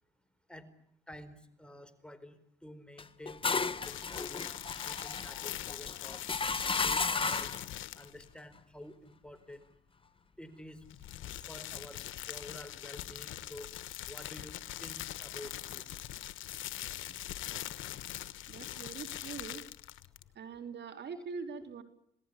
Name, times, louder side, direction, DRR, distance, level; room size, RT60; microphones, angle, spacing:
voice 1, 1.1-2.4 2.6-4.5 4.8-6.2 6.8-7.5 8.0-9.6 10.4-10.8 11.5-12.0 12.3-13.7 14.1-16.0 21.1-21.2 21.6-21.7, left 1 dB, 5° left, 10 dB, 4.4 m, -50 dB
sound 1, 3.0-7.7, left 4 dB, 25° left, 1.5 m, -34 dB
sound 2, 3.8-8.3 10.8-20.3, left 13 dB, 80° left, 1.3 m, -42 dB
voice 2, 18.5-19.6 20.4-21.8, right 5 dB, 60° right, 8 dB, 3.6 m, -43 dB
28.5 x 19.0 x 9.9 m, 0.75 s
cardioid pair, 90°, 20 cm